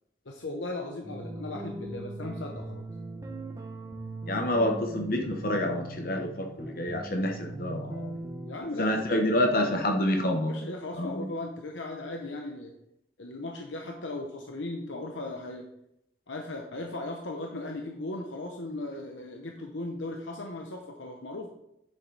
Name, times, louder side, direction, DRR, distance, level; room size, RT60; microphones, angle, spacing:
voice 1, 0.3-2.8 8.5-8.9 9.3-9.7 10.5-12.7 13.2-15.7 16.3-21.5, left 2 dB, 90° left, 2 dB, 1.0 m, -37 dB
sound 1, 1.0-8.6, right 2 dB, 15° right, 1.1 m, -40 dB
voice 2, 4.3-8.1 8.8-10.5 10.9-11.3, left 1 dB, 50° left, 3 dB, 1.2 m, -28 dB
9.8 x 7.3 x 4.1 m, 0.82 s
head